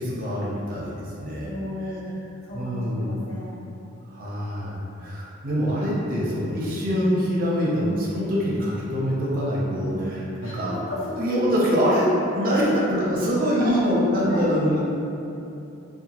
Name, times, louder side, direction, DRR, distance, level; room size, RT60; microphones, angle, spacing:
voice 1, 0.0-1.5 2.5-3.2 4.1-10.7 11.2-14.8, equal, 45° right, -6 dB, 0.5 m, -24 dB
voice 2, 1.4-2.1 2.4-3.6 9.9-10.1 10.4-11.2 12.4-12.8 13.6-13.9 14.3-14.5, equal, 75° left, -9 dB, 0.9 m, -34 dB
2.7 x 2.2 x 2.8 m, 2.8 s
head